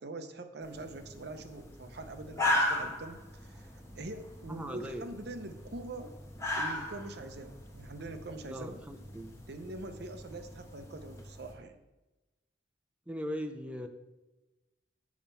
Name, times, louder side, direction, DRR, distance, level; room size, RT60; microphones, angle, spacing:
voice 1, 0.0-6.1 6.6-8.8 9.5-11.8, right 2 dB, 65° right, 8 dB, 0.7 m, -44 dB
sound 1, 0.6-11.5, left 1 dB, 15° left, 1.3 m, -38 dB
voice 2, 4.5-5.0 8.5-9.4 13.1-13.9, equal, 5° right, 5 dB, 0.5 m, -39 dB
7.3 x 4.5 x 5.5 m, 1.1 s
head